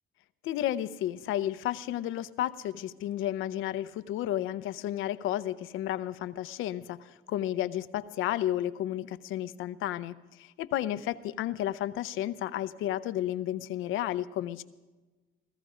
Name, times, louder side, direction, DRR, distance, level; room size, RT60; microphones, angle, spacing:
voice 1, 0.4-14.6, left 12 dB, 90° left, 14 dB, 0.6 m, -32 dB
17.0 x 14.0 x 5.0 m, 1.2 s
cardioid pair, 90°, 20 cm